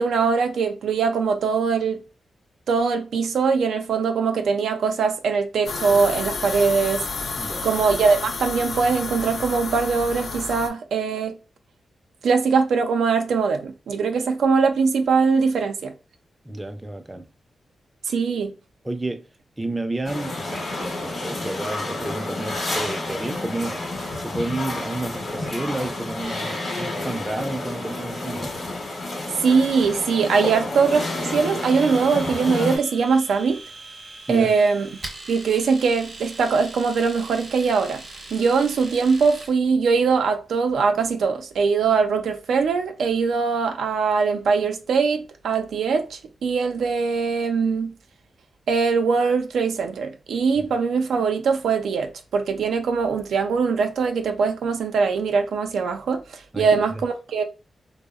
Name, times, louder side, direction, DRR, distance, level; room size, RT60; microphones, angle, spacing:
voice 1, 0.0-2.0 2.7-7.0 7.6-11.4 12.2-15.9 18.0-18.5 29.4-33.6 34.3-34.9 35.3-38.0 38.3-47.9 48.7-57.4, right 5 dB, 90° right, 0.3 m, -22 dB
sound 1, 5.7-10.7, left 4 dB, 70° left, 0.3 m, -31 dB
voice 2, 16.4-17.3 18.8-19.3 19.6-23.9 24.1-28.6 34.3-34.5 50.6-50.7 56.5-57.0, right 2 dB, 15° right, 0.4 m, -31 dB
sound 2, 20.0-32.8, left 2 dB, 55° left, 0.9 m, -30 dB
Domestic sounds home sounds, 31.6-39.5, right 2 dB, 50° right, 0.7 m, -40 dB
2.7 x 2.0 x 2.3 m
cardioid pair, 95°, 0 cm